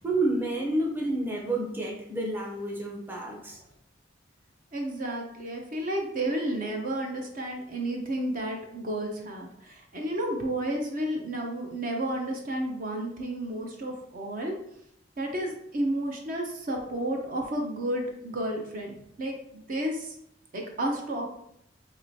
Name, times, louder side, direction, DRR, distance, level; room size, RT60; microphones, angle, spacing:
voice 1, 0.0-3.6, right 2 dB, 10° right, -1 dB, 0.7 m, -29 dB
voice 2, 4.7-14.5 15.2-20.2 20.5-21.3, right 1 dB, 50° right, 1 dB, 0.6 m, -32 dB
4.8 x 3.0 x 2.7 m, 0.74 s
head